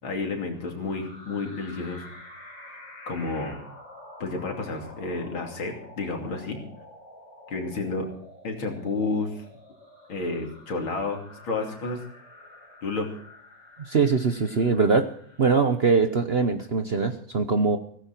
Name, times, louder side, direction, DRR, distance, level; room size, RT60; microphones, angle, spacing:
voice 1, 0.0-2.1 3.1-3.6 4.2-6.6 7.5-8.1 8.4-9.4 10.1-12.0 12.8-13.1, left 3 dB, 85° left, 3 dB, 3.6 m, -30 dB
sound 1, 0.5-16.2, left 1 dB, 65° left, 4.8 m, -48 dB
voice 2, 13.8-15.1 15.4-17.8, right 4 dB, 50° right, 8 dB, 0.8 m, -22 dB
16.5 x 15.0 x 4.4 m, 0.62 s
omnidirectional pair, 2.2 m